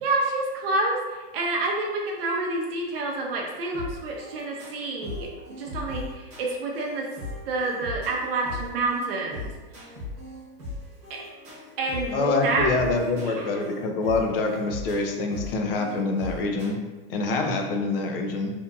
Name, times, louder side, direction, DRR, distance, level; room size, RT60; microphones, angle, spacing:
voice 1, 0.0-5.3 5.5-7.1 7.5-9.5 11.1-11.2 11.8-12.9 13.2-13.8, right 2 dB, 75° right, -1 dB, 0.6 m, -28 dB
sound 1, 3.7-16.7, left 2 dB, 25° right, 1.0 m, -39 dB
voice 2, 12.1-16.8 17.1-18.5, left 3 dB, 70° left, 3 dB, 0.6 m, -26 dB
2.7 x 2.6 x 2.3 m, 1.2 s
supercardioid pair, 180°, 30 cm